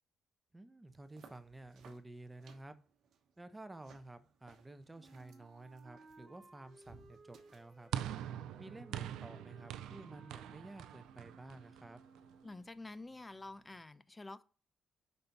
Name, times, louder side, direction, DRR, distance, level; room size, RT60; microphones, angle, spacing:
voice 1, 0.5-2.8 3.4-7.9 8.6-12.0, right 2 dB, 15° right, 0.8 m, -52 dB
sound 1, 0.9-7.9, right 6 dB, 70° right, 1.0 m, -63 dB
Wind instrument woodwind instrument, 4.9-12.7, right 3 dB, 40° right, 1.5 m, -61 dB
sound 2, 7.9-12.3, right 11 dB, 85° right, 0.4 m, -44 dB
voice 2, 12.4-14.4, left 2 dB, 20° left, 0.5 m, -49 dB
5.4 x 3.9 x 5.8 m
cardioid pair, 90°, 0 cm